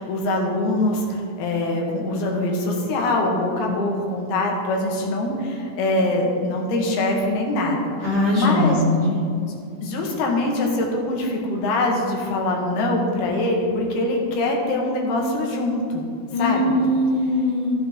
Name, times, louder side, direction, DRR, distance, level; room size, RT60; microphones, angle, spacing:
voice 1, 0.0-8.8 9.8-16.0 16.4-16.7, left 2 dB, 80° left, 0 dB, 3.3 m, -23 dB
voice 2, 8.0-9.2 16.3-17.7, left 1 dB, 20° left, -7 dB, 1.2 m, -21 dB
13.5 x 7.6 x 3.6 m, 2.4 s
omnidirectional pair, 4.4 m